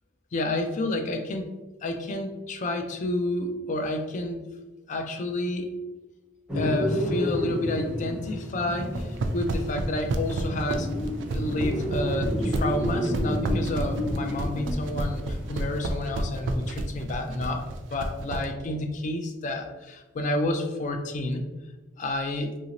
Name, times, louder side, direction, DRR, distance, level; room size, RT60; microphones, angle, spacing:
voice 1, 0.3-1.5 1.8-4.5 4.9-5.7 6.5-10.9 11.3-17.6 17.9-21.4 22.0-22.5, left 1 dB, 40° left, 5 dB, 0.3 m, -30 dB
sound 1, 6.5-15.9, left 1 dB, 5° right, 0.6 m, -30 dB
sound 2, 8.8-18.4, right 2 dB, 70° right, 0.3 m, -29 dB
2.9 x 2.6 x 2.8 m, 1.1 s
head